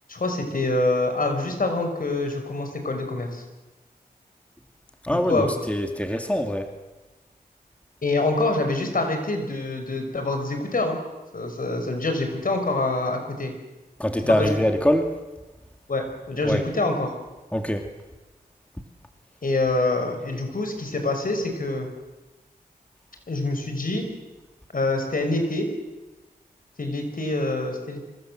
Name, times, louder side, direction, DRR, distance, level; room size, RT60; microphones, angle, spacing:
voice 1, 0.1-3.4 5.1-5.7 8.0-11.0 11.3-13.5 14.2-14.5 15.9-17.1 19.4-21.9 23.3-24.1 24.7-25.7 26.8-28.1, left 2 dB, 60° left, 5 dB, 5.7 m, -25 dB
voice 2, 5.0-6.7 14.0-15.2 16.4-16.6 17.5-17.8, equal, 10° left, 5 dB, 2.5 m, -23 dB
26.0 x 25.0 x 7.7 m, 1.1 s
wide cardioid pair, 80°, 16 cm